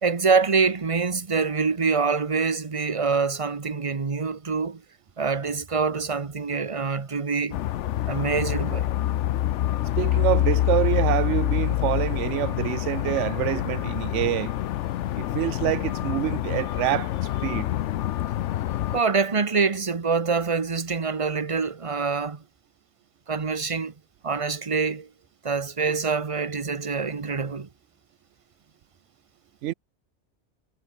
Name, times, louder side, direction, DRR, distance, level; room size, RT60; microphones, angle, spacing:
voice 1, 0.0-4.8 5.2-7.6 8.1-8.9 18.9-22.4 23.3-23.9 24.2-25.1 25.4-27.7, right 5 dB, 30° right, 1.0 m, -25 dB
sound 1, 7.5-19.0, left 13 dB, 80° left, 0.9 m, -26 dB
voice 2, 10.0-14.5 15.2-17.1 17.4-17.7 29.6-29.7, right 14 dB, 85° right, 0.9 m, -26 dB
omnidirectional pair, 1.2 m